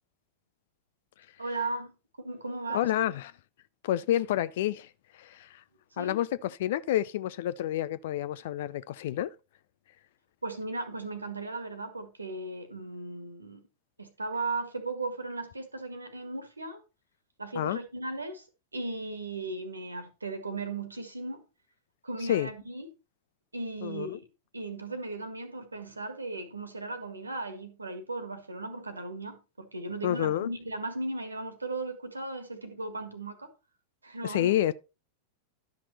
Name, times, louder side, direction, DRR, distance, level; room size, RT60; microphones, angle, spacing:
voice 1, 1.4-2.9 5.9-6.2 10.4-13.6 14.0-16.8 17.4-18.4 18.7-21.4 22.0-22.9 23.5-24.2 24.5-33.5 34.0-34.5, right 2 dB, 80° right, 1.7 m, -36 dB
voice 2, 2.7-3.3 3.8-5.6 6.0-9.3 17.6-17.8 22.3-22.5 23.8-24.2 30.0-30.5 34.2-34.7, left 12 dB, 55° left, 0.5 m, -29 dB
11.5 x 6.0 x 4.2 m
figure-of-eight pair, 90°, 0 cm